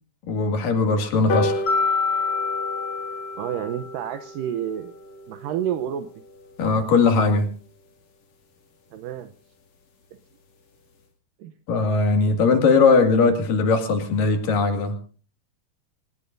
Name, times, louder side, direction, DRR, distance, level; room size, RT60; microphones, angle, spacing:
voice 1, 0.3-1.6 6.6-7.5 11.7-14.9, left 4 dB, 70° left, 5 dB, 3.9 m, -19 dB
sound 1, 1.3-8.0 8.5-8.6 8.9-9.0 9.3-9.4 9.7-9.8 10.0-10.3 10.7-10.8, left 2 dB, 55° left, 3.5 m, -33 dB
Mallet percussion, 1.7-4.0, left 4 dB, 35° left, 3.2 m, -26 dB
voice 2, 3.4-4.9 5.3-6.1 8.9-9.3 11.4-11.5, right 10 dB, 75° right, 8 dB, 2.4 m, -29 dB
25.5 x 18.0 x 2.6 m, 0.40 s
omnidirectional pair, 4.0 m